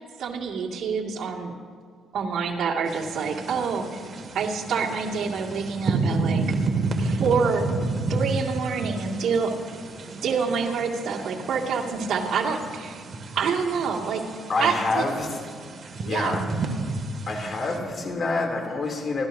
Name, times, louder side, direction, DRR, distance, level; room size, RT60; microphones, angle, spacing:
voice 1, 0.2-1.5 2.1-4.0 4.3-6.6 7.0-7.7 8.1-9.5 10.2-13.0 13.4-14.2 14.6-15.2 16.0-16.4, right 5 dB, 70° right, -1 dB, 2.2 m, -27 dB
sound 1, 2.9-17.8, right 3 dB, 45° right, 2.2 m, -31 dB
voice 2, 14.5-15.3 16.0-16.4 17.3-19.3, left 3 dB, 45° left, 2 dB, 2.9 m, -27 dB
29.5 x 14.0 x 2.7 m, 2.1 s
cardioid pair, 90°, 0 cm